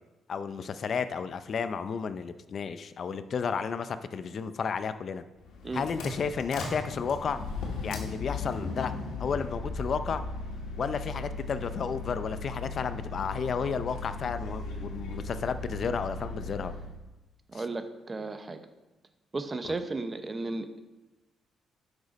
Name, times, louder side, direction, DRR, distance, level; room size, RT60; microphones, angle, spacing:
voice 1, 0.3-5.2 5.7-7.4 7.8-8.9 9.2-10.2 10.8-16.7 17.5-17.6, left 6 dB, 50° left, 12 dB, 0.5 m, -32 dB
sound 1, 5.4-17.0, left 3 dB, 80° left, 1.8 m, -37 dB
voice 2, 17.5-18.6 19.3-20.8, right 3 dB, 25° right, 9 dB, 0.8 m, -34 dB
10.0 x 6.3 x 4.1 m, 1.1 s
cardioid pair, 90°, 0 cm